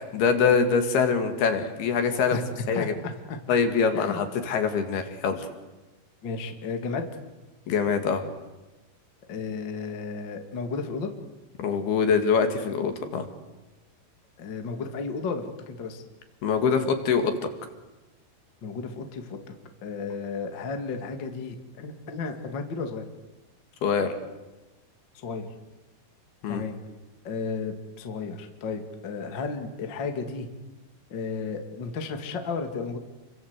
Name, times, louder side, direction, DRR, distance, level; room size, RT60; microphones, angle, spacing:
voice 1, 0.1-2.4 2.7-3.0 3.5-5.5 7.7-8.2 11.6-13.3 16.4-17.5 23.8-24.1 26.4-26.6, left 6 dB, 65° left, 7 dB, 3.9 m, -24 dB
voice 2, 2.7-3.4 3.9-4.2 6.2-7.1 9.3-11.1 14.4-16.0 18.6-19.4 19.8-23.0 25.1-25.5 26.5-26.8 27.2-30.5 31.1-33.0, left 4 dB, 35° left, 5 dB, 2.2 m, -33 dB
29.5 x 23.5 x 8.2 m, 1.1 s
omnidirectional pair, 5.0 m